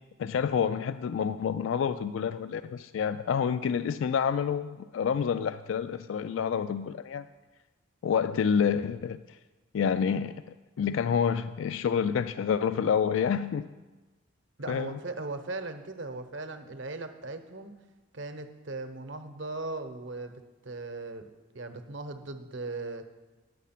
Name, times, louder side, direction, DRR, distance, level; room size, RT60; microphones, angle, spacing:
voice 1, 0.2-7.3 8.0-9.4 9.7-13.7 14.7-15.0, left 7 dB, 65° left, 12 dB, 0.3 m, -28 dB
voice 2, 14.6-17.7 18.1-21.3 21.5-23.1, right 2 dB, 60° right, 8 dB, 0.9 m, -38 dB
9.5 x 9.1 x 5.8 m, 1.2 s
head